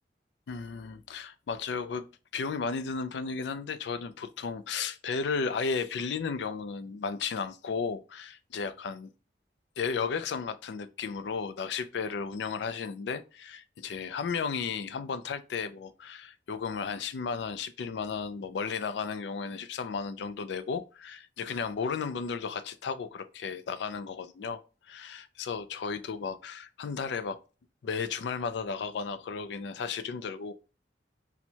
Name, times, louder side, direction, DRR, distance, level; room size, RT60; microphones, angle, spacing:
voice 1, 0.5-2.0 2.3-9.1 9.8-24.6 24.9-27.4 27.8-30.5, left 5 dB, 80° left, 0.4 m, -34 dB
4.4 x 2.1 x 2.7 m
head